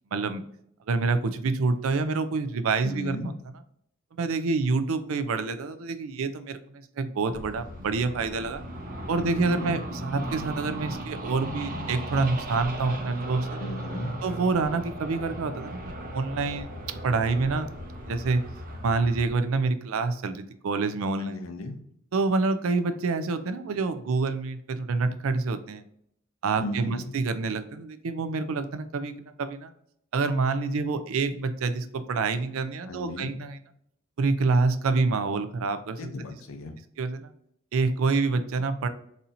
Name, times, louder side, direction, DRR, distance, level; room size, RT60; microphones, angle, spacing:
voice 1, 0.1-0.4 0.9-3.3 4.2-8.6 9.1-13.6 14.2-17.7 18.1-18.4 18.8-21.4 22.1-25.8 26.4-29.7 30.1-33.6 34.2-36.1 37.0-37.3 37.7-38.9, right 3 dB, 80° right, 10 dB, 0.4 m, -27 dB
voice 2, 2.8-3.3 9.2-9.8 13.6-14.2 21.2-21.8 26.6-27.1 32.9-33.4 36.0-36.7, left 2 dB, 80° left, 5 dB, 0.6 m, -36 dB
sound 1, 7.3-19.4, right 1 dB, 40° right, 0.7 m, -37 dB
4.2 x 2.7 x 2.6 m, 0.71 s
head